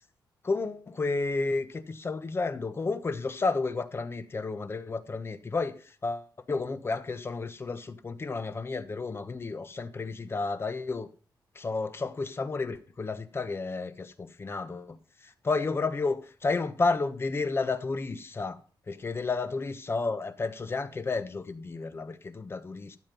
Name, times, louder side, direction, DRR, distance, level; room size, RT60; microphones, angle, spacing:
voice 1, 0.5-11.1 11.5-18.6 18.9-23.0, left 3 dB, 30° left, 1.1 m, -31 dB
12.5 x 7.5 x 5.4 m
wide cardioid pair, 125°, 8 cm